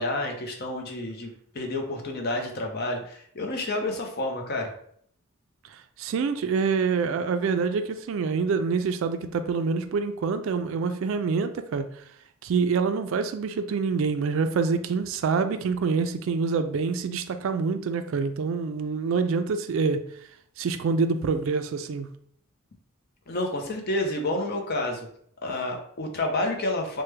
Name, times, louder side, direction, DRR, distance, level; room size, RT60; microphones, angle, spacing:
voice 1, 0.0-4.7 23.3-25.1 25.4-27.0, left 2 dB, 45° left, 2 dB, 0.6 m, -29 dB
voice 2, 6.0-11.9 12.4-20.0 20.6-22.1, right 5 dB, 65° right, 9 dB, 0.3 m, -26 dB
3.2 x 2.1 x 3.2 m, 0.64 s
head